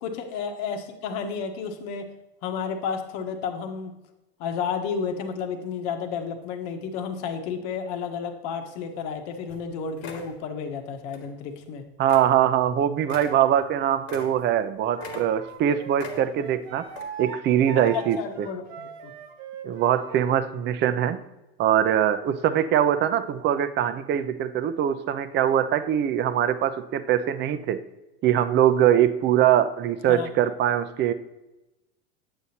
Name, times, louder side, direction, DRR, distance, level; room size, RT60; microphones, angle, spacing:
voice 1, 0.0-2.1 2.4-3.9 4.4-11.8 17.7-19.1 30.1-30.3, left 6 dB, 60° left, 6 dB, 1.1 m, -32 dB
sound 1, 9.1-9.2 9.5-9.7 10.0-10.4 11.1-11.3 11.6-11.7 12.1-12.4 12.6-12.7 13.0-14.7 15.0-15.6 16.0-16.5 16.9-17.0, left 5 dB, 85° left, 1.6 m, -41 dB
voice 2, 12.0-16.9 17.2-18.2 19.6-21.2 21.6-27.8 28.2-31.1, right 10 dB, 35° right, 11 dB, 0.6 m, -22 dB
Wind instrument woodwind instrument, 15.0-20.4, right 5 dB, 65° right, 1.3 m, -40 dB
8.2 x 7.8 x 2.8 m, 0.97 s
supercardioid pair, 110°, 31 cm